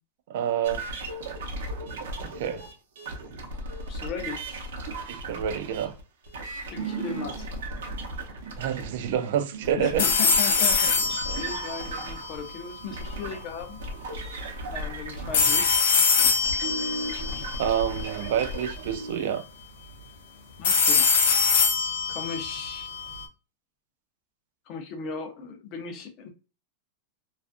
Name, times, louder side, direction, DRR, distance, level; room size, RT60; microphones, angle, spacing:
voice 1, 0.3-0.9 2.2-2.7 5.1-6.0 8.6-10.4 17.6-19.4, right 9 dB, 55° right, 0.3 m, -28 dB
sound 1, 0.6-15.8 16.2-19.1, right 2 dB, 85° right, 0.6 m, -36 dB
voice 2, 3.9-4.4 6.7-7.4 9.8-13.8 14.7-15.8 20.6-21.1 22.1-22.9 24.7-26.3, left 5 dB, 30° left, 0.5 m, -36 dB
sound 2, 10.0-13.0 15.3-18.5 20.6-23.2, left 5 dB, 80° left, 0.6 m, -24 dB
2.4 x 2.3 x 2.4 m
supercardioid pair, 175°, 0 cm